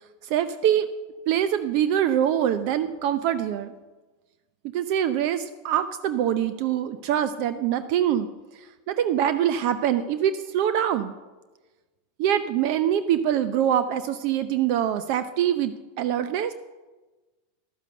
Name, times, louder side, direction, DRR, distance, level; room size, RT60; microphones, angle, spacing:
voice 1, 0.2-0.9 1.3-3.7 4.7-8.3 8.9-11.1 12.2-16.5, right 10 dB, 60° right, 12 dB, 0.7 m, -24 dB
12.0 x 7.4 x 7.8 m, 1.2 s
hypercardioid pair, 110°, 0 cm